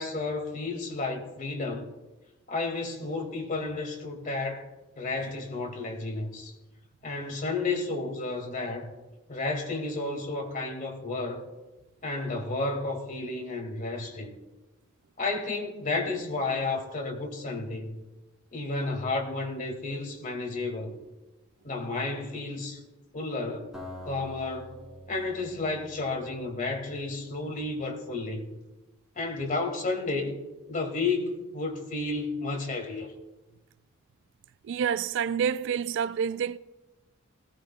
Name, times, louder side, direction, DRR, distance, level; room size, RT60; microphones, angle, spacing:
voice 1, 0.0-1.9 2.5-4.7 5.0-6.5 7.0-8.9 9.3-11.5 12.0-14.3 15.2-18.0 18.5-21.0 21.6-22.8 23.1-23.7 24.0-24.7 25.1-28.5 29.2-30.4 30.7-33.1, left 3 dB, 40° left, 2.0 m, -32 dB
Acoustic guitar, 23.7-26.9, left 1 dB, 5° right, 3.8 m, -46 dB
voice 2, 34.6-36.6, right 7 dB, 60° right, 0.3 m, -28 dB
19.0 x 16.5 x 2.2 m
head